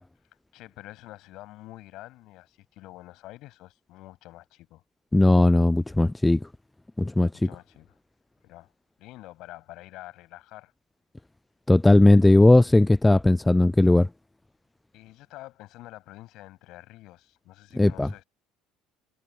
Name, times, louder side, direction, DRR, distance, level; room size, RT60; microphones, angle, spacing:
voice 1, 0.5-4.8 7.3-8.0 8.4-8.7 9.0-10.7 14.9-18.2, left 17 dB, 65° left, 7.2 m, -47 dB
voice 2, 5.1-6.4 7.0-7.5 11.7-14.1 17.8-18.1, left 2 dB, 10° left, 0.3 m, -18 dB
hypercardioid pair, 65°, 0 cm